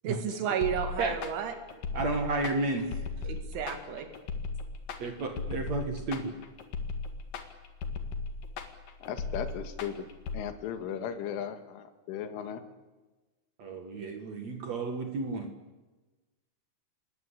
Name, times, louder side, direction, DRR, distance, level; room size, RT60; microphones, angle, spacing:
voice 1, 0.1-1.5 3.2-4.1, right 8 dB, 75° right, 7 dB, 4.3 m, -32 dB
sound 1, 0.6-10.4, left 4 dB, 55° left, 3.1 m, -37 dB
voice 2, 1.9-2.9 5.0-6.3 13.6-15.5, right 3 dB, 50° right, 5 dB, 2.2 m, -32 dB
voice 3, 9.0-10.1 10.3-12.6, left 8 dB, 85° left, 9 dB, 4.3 m, -36 dB
27.0 x 20.5 x 8.5 m, 1.2 s
omnidirectional pair, 5.5 m